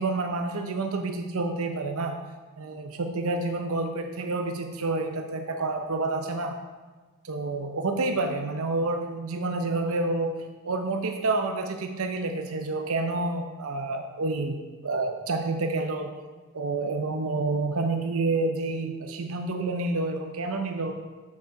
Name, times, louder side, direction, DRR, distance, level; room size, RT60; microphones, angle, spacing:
voice 1, 0.0-2.2 2.6-6.6 7.2-10.4 10.6-16.1 16.5-20.9, right 3 dB, 75° right, 5 dB, 0.7 m, -29 dB
7.2 x 6.7 x 4.6 m, 1.3 s
head